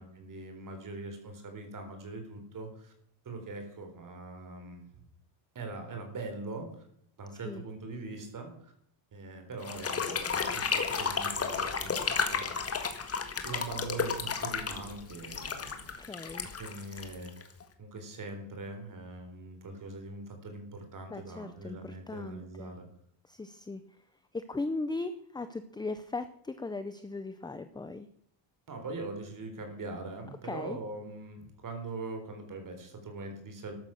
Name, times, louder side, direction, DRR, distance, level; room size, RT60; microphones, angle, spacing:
voice 1, 0.0-2.9 3.2-4.8 5.5-6.8 7.2-8.7 9.1-12.5 13.4-15.9 16.6-17.3 17.8-22.9 28.7-33.7, right 3 dB, 45° right, 5 dB, 4.1 m, -42 dB
sound 1, 9.6-17.6, left 5 dB, 30° left, 1.8 m, -33 dB
voice 2, 16.0-16.5 21.1-22.7 23.2-23.8 24.3-28.1 30.4-30.8, left 3 dB, 10° left, 11 dB, 0.5 m, -38 dB
13.5 x 12.5 x 6.4 m, 0.67 s
cardioid pair, 175°, 46 cm